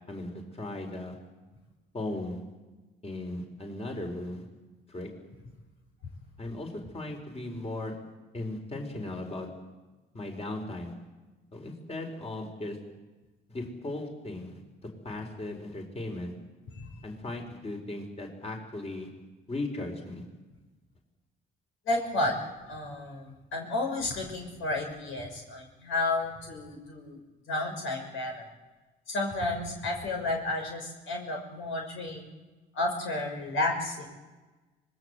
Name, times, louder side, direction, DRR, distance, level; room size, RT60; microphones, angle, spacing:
voice 1, 0.1-1.1 1.9-2.4 3.0-4.4 4.9-5.1 6.4-8.0 8.3-9.5 10.1-10.9 11.5-12.8 13.5-14.6 15.0-16.3 17.0-19.1 19.5-20.2, left 2 dB, 30° left, 3 dB, 4.6 m, -37 dB
voice 2, 21.9-22.3 22.7-27.2 27.5-28.5 29.1-32.3 32.7-34.1, left 2 dB, 80° left, 1 dB, 6.1 m, -32 dB
25.5 x 20.5 x 8.0 m, 1.2 s
cardioid pair, 90°, 20 cm